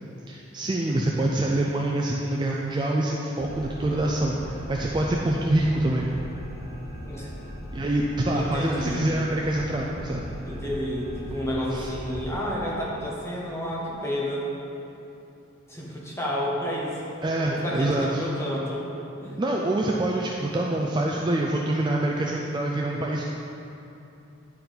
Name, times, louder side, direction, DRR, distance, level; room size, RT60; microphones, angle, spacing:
voice 1, 0.3-6.1 7.7-10.2 11.7-11.9 17.2-18.2 19.4-23.2, right 1 dB, 20° right, -2 dB, 0.3 m, -25 dB
sound 1, 3.4-12.5, equal, 75° left, 1.1 m, -39 dB
voice 2, 8.3-9.1 10.4-14.5 15.7-17.2 17.5-18.8 19.2-19.4, equal, 15° left, -5 dB, 1.1 m, -30 dB
9.8 x 4.5 x 3.9 m, 2.8 s
head